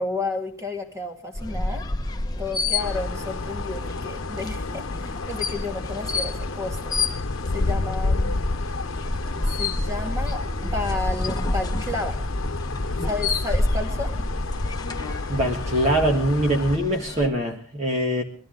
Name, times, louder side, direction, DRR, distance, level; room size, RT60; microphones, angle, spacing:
voice 1, 0.0-1.9 2.4-7.0 7.5-8.3 9.6-12.2 13.1-14.1, left 2 dB, 15° right, 3 dB, 2.2 m, -32 dB
sound 1, 1.3-17.3, left 2 dB, 20° left, 1.1 m, -30 dB
sound 2, 2.8-16.8, left 3 dB, 75° left, 0.9 m, -30 dB
voice 2, 15.3-18.2, right 1 dB, 30° right, 1 dB, 1.7 m, -23 dB
22.0 x 14.0 x 3.9 m, 0.42 s
head